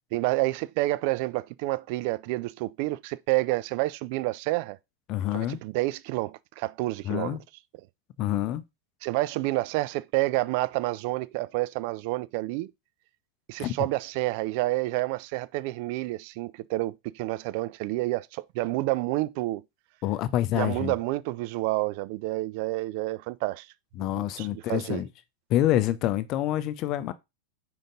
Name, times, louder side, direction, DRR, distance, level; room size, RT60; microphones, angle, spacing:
voice 1, 0.1-4.8 5.3-7.4 9.0-12.7 13.5-19.6 20.5-23.7 24.0-25.0, right 19 dB, 45° right, 0.3 m, -29 dB
voice 2, 5.1-5.6 7.0-7.4 8.2-8.6 13.6-13.7 20.0-20.9 24.0-25.1 25.5-27.1, left 13 dB, 40° left, 0.6 m, -27 dB
5.1 x 5.1 x 3.8 m
figure-of-eight pair, 90°, 0 cm